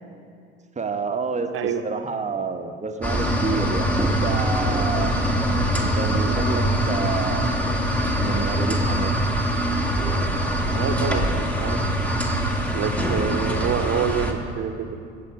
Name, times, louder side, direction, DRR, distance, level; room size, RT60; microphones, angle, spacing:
voice 1, 0.8-5.2 5.8-7.6 8.2-9.1, right 4 dB, 20° right, 5 dB, 1.1 m, -29 dB
voice 2, 1.5-1.8 10.7-11.9 12.7-15.0, right 8 dB, 40° right, 7 dB, 1.1 m, -27 dB
sound 1, 3.0-14.3, equal, 5° left, 1.6 m, -23 dB
15.5 x 7.7 x 4.8 m, 2.3 s
hypercardioid pair, 70°, 33 cm